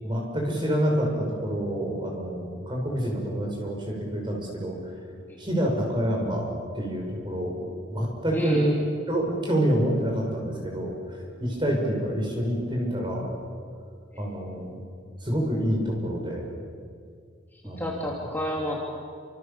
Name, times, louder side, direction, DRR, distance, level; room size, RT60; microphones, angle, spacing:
voice 1, 0.0-4.8 5.4-8.8 9.1-13.3 14.2-14.8 15.2-16.5 17.6-18.1, equal, 25° right, 0 dB, 6.2 m, -27 dB
voice 2, 8.3-8.7 14.1-14.2 17.6-18.8, left 1 dB, 10° left, -3 dB, 3.1 m, -30 dB
29.0 x 26.5 x 7.1 m, 2.1 s
head